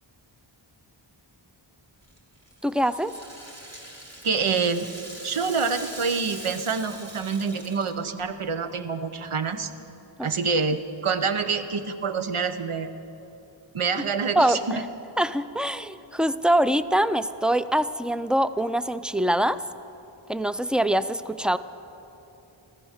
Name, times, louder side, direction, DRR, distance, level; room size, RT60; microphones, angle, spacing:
Rattle (instrument), 2.0-8.2, right 1 dB, 30° right, 2.6 m, -42 dB
voice 1, 2.6-3.1 10.2-10.3 14.4-14.8 15.2-19.6 20.3-21.6, right 1 dB, ahead, 13 dB, 0.3 m, -24 dB
voice 2, 4.2-4.9 5.2-9.7 10.2-12.9 13.7-14.8, right 5 dB, 90° right, 9 dB, 0.8 m, -26 dB
15.0 x 14.0 x 6.5 m, 3.0 s
wide cardioid pair, 45°, 48 cm